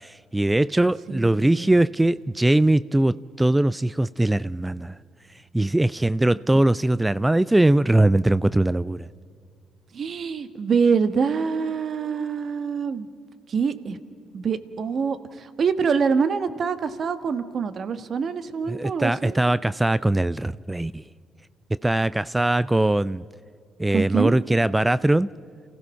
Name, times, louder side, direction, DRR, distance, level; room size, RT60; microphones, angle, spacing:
voice 1, 0.0-5.0 5.5-9.1 18.7-21.0 21.8-23.2 23.8-25.3, right 1 dB, 15° right, 0.4 m, -21 dB
voice 2, 1.1-1.7 9.9-13.1 13.5-14.0 14.3-19.3 23.9-24.4, right 5 dB, 55° right, 1.2 m, -25 dB
29.0 x 15.5 x 5.7 m
hypercardioid pair, 55°, 0 cm